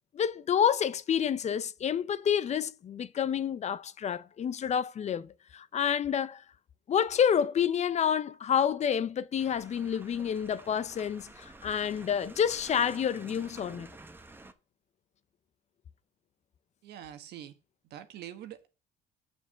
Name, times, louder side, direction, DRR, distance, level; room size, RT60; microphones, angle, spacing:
voice 1, 0.1-6.4 6.9-13.9, left 8 dB, 40° left, 0.6 m, -29 dB
sound 1, 9.4-14.5, right 2 dB, 10° right, 1.0 m, -50 dB
voice 2, 16.8-17.5 17.9-18.7, right 11 dB, 75° right, 1.4 m, -44 dB
7.2 x 6.8 x 6.8 m
cardioid pair, 110°, 17 cm